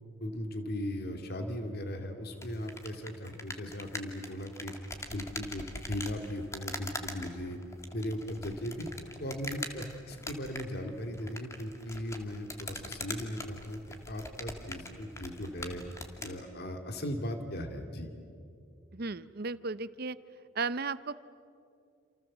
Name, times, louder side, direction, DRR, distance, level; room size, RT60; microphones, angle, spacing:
voice 1, 0.2-4.7 5.1-7.6 7.9-8.9 9.2-13.8 14.1-15.8 16.2-18.1, left 1 dB, 55° left, 6 dB, 2.4 m, -38 dB
sound 1, 2.4-16.4, left 2 dB, 15° left, 2.1 m, -43 dB
voice 2, 18.9-20.2 20.6-21.1, right 4 dB, 50° right, 16 dB, 0.8 m, -35 dB
28.5 x 28.5 x 7.4 m, 2.5 s
head